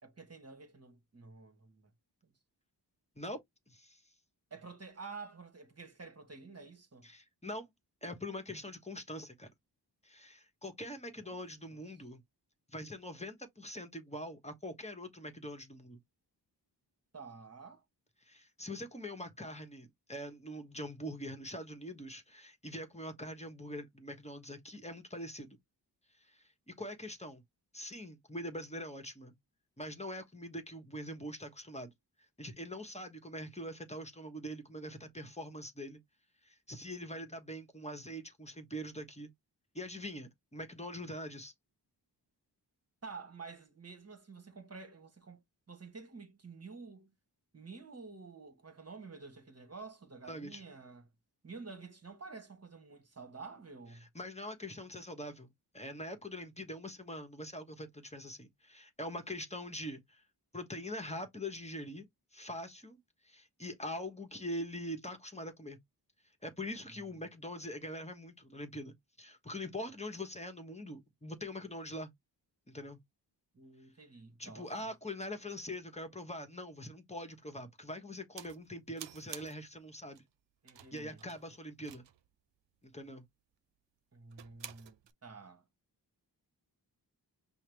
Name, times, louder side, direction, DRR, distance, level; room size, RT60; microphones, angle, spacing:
voice 1, 0.0-1.9 2.2-2.3 4.5-7.1 11.2-11.4 11.7-11.8 17.1-17.8 43.0-45.4 45.7-47.1 47.5-51.1 51.4-54.1 66.9-67.0 73.5-74.9 80.6-81.2 84.1-85.6, right 4 dB, 35° right, 1.3 m, -50 dB
voice 2, 3.7-4.0 7.0-7.7 8.0-9.5 10.0-12.2 12.7-16.0 18.2-25.6 26.2-27.4 27.7-29.3 29.8-31.9 32.4-36.0 36.4-39.3 39.7-41.5 50.3-50.6 54.1-60.2 60.5-62.1 62.3-63.0 63.2-65.8 66.4-72.1 72.7-73.0 74.4-80.2 80.9-82.1 82.8-83.3, left 1 dB, 15° left, 1.2 m, -43 dB
sound 1, 78.4-78.6 79.0-79.7 80.2-80.3 80.7-82.3 84.3-85.1, right 10 dB, 85° right, 0.6 m, -50 dB
5.7 x 2.1 x 3.3 m
cardioid pair, 65°, 42 cm